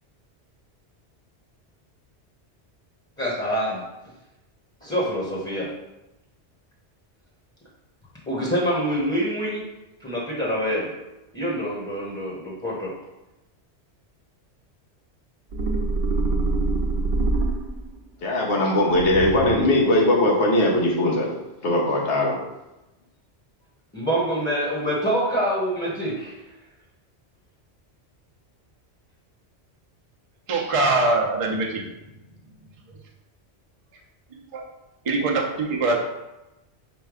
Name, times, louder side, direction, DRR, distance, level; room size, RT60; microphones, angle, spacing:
voice 1, 3.2-3.8 4.8-5.7 8.3-9.6 10.0-10.9 11.3-12.9 23.9-26.3, equal, 10° left, -5 dB, 0.9 m, -25 dB
sound 1, 15.5-18.0 18.9-19.9, right 2 dB, 65° right, 0.9 m, -25 dB
voice 2, 18.2-21.3 21.6-22.4, left 1 dB, 75° left, -2 dB, 1.3 m, -20 dB
voice 3, 30.5-31.8 34.5-34.6 35.0-36.0, right 2 dB, 40° right, 0 dB, 0.5 m, -22 dB
5.1 x 2.2 x 4.8 m, 0.99 s
omnidirectional pair, 1.2 m